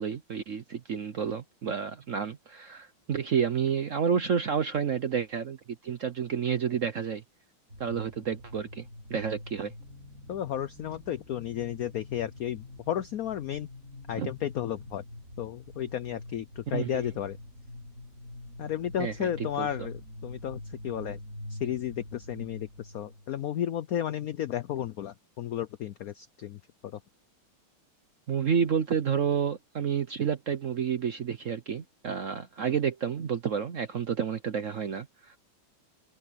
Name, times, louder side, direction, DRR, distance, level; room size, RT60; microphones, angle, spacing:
voice 1, 0.0-5.6 5.8-7.2 7.8-9.7 14.2-14.3 16.7-17.1 19.0-19.3 19.6-19.7 28.3-35.4, right 7 dB, 60° right, 0.8 m, -30 dB
sound 1, 7.7-23.6, left 1 dB, 40° right, 4.1 m, -45 dB
voice 2, 10.3-13.7 14.1-15.0 15.4-17.4 18.6-21.2 21.5-27.0, left 11 dB, 90° left, 0.7 m, -33 dB
omnidirectional pair, 2.3 m